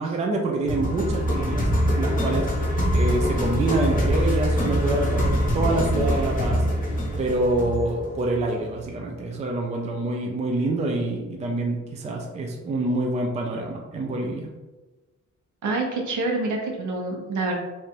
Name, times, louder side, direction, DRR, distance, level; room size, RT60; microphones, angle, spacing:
voice 1, 0.0-6.9 7.2-14.5, right 2 dB, 20° right, 1 dB, 0.4 m, -26 dB
sound 1, 0.7-8.8, equal, 25° left, 0.8 m, -24 dB
voice 2, 15.6-17.6, right 2 dB, 70° right, 0 dB, 1.0 m, -26 dB
3.3 x 2.4 x 4.3 m, 1.2 s
wide cardioid pair, 160°, 30 cm